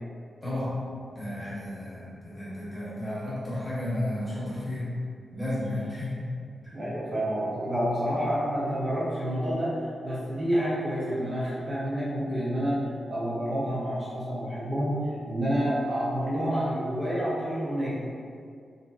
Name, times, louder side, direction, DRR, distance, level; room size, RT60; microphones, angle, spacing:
voice 1, 0.4-0.7 1.1-4.9 5.3-6.2 6.6-6.7, left 1 dB, 10° left, -10 dB, 0.8 m, -33 dB
voice 2, 6.7-9.8 10.0-12.8 13.1-15.0 15.3-17.9, equal, 30° right, -9 dB, 0.5 m, -28 dB
2.8 x 2.6 x 2.2 m, 2.2 s
wide cardioid pair, 170°, 0 cm